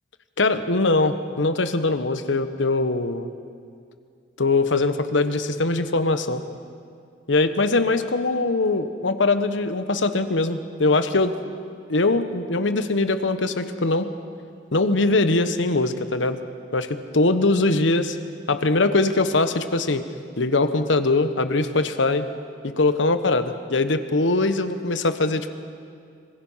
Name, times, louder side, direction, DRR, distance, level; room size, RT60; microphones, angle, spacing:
voice 1, 0.4-3.3 4.4-6.4 7.3-11.3 11.9-14.0 14.7-16.4 16.7-18.2 18.5-20.0 20.4-22.3 22.6-25.5, left 2 dB, 80° left, 10 dB, 1.1 m, -22 dB
25.5 x 21.0 x 5.7 m, 2.3 s
head